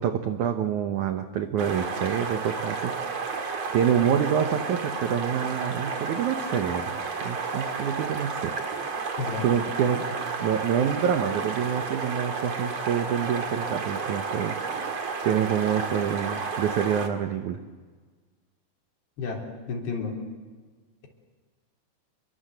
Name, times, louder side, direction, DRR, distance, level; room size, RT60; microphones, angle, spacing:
voice 1, 0.0-3.1 3.7-8.6 9.4-14.7 15.2-17.6, right 8 dB, 85° right, 7 dB, 1.7 m, -27 dB
sound 1, 1.6-17.1, right 5 dB, 45° right, 2.7 m, -32 dB
voice 2, 19.2-20.2, left 4 dB, 70° left, -1 dB, 5.7 m, -32 dB
28.5 x 23.0 x 8.0 m, 1.4 s
omnidirectional pair, 5.1 m